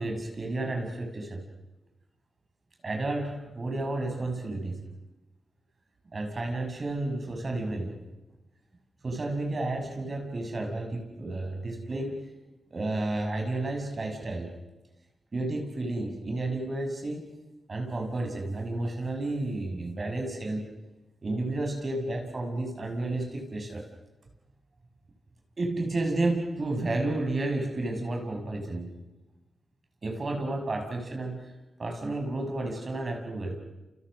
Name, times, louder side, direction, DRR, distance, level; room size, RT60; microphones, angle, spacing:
voice 1, 0.0-1.4 2.8-4.8 6.1-8.0 9.0-12.3 12.7-14.5 15.3-17.3 17.7-20.7 21.2-23.8 25.6-29.0 30.0-31.4 31.8-33.6, right 2 dB, 50° right, 3 dB, 6.3 m, -31 dB
29.5 x 28.5 x 6.4 m, 1.1 s
supercardioid pair, 45°, 0 cm